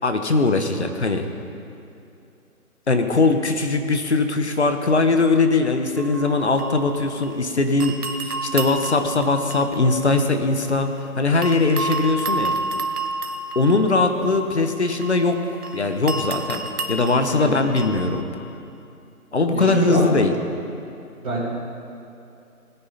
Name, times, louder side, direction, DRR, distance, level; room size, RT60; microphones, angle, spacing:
voice 1, 0.0-1.3 2.9-8.0 8.2-12.6 13.5-15.4 15.7-16.6 16.9-18.2 19.3-20.3, left 3 dB, 45° left, 6 dB, 1.1 m, -20 dB
sound 1, 6.0-7.5 7.8-11.0 11.4-18.2, right 2 dB, 75° right, 1.5 m, -31 dB
voice 2, 19.5-20.0 21.2-21.4, right 1 dB, 25° right, -12 dB, 3.5 m, -24 dB
18.0 x 10.0 x 5.7 m, 2.6 s
figure-of-eight pair, 170°, 45 cm